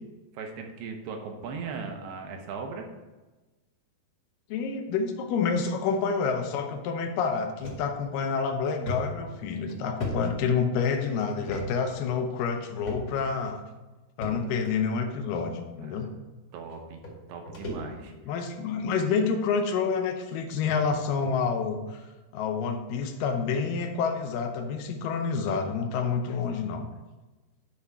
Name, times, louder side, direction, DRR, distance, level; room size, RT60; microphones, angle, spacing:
voice 1, 0.3-2.8 15.8-16.2 16.5-17.0 17.3-18.1, right 5 dB, 80° right, 3 dB, 2.9 m, -38 dB
voice 2, 4.5-13.6 14.2-16.1 18.3-22.0 22.3-26.9, left 5 dB, 75° left, 4 dB, 2.1 m, -28 dB
sound 1, 7.6-7.8 8.3-8.4 8.9-10.9 11.4-11.7 11.9-12.1 12.8-13.3 14.2-14.7 15.6-15.7 16.7-16.8 17.0-18.2 18.6-18.9 19.7-19.8 20.3-20.4 20.7-20.8 21.2-21.4, equal, 40° left, 1.2 m, -37 dB
9.9 x 3.6 x 5.4 m, 1.2 s
omnidirectional pair, 4.7 m